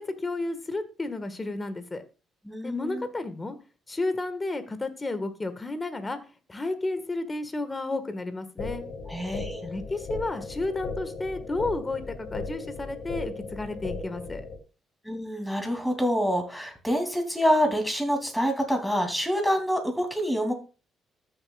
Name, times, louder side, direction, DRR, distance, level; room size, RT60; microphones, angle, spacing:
voice 1, 0.0-2.0 2.6-3.6 3.9-6.2 6.5-8.8 9.6-14.4, left 2 dB, 25° left, 10 dB, 1.5 m, -32 dB
voice 2, 2.5-3.0 9.1-9.6 15.0-20.5, equal, ahead, 4 dB, 2.7 m, -26 dB
sound 1, 8.6-14.6, left 3 dB, 70° left, 2.5 m, -36 dB
13.5 x 7.0 x 2.3 m, 0.33 s
cardioid pair, 90°, 0 cm